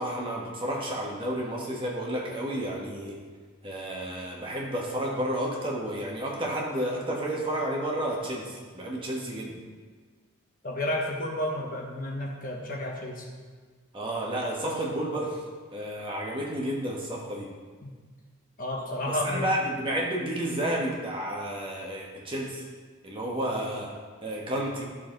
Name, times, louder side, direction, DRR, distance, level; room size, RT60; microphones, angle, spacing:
voice 1, 0.0-3.2 3.6-9.6 13.9-15.4 15.7-17.5 19.1-22.6 23.0-23.9 24.2-24.8, right 1 dB, 25° right, -2 dB, 1.4 m, -31 dB
voice 2, 10.6-13.3 17.8-17.9 18.6-19.5, left 1 dB, 40° left, -1 dB, 1.4 m, -31 dB
13.0 x 6.6 x 3.9 m, 1.5 s
head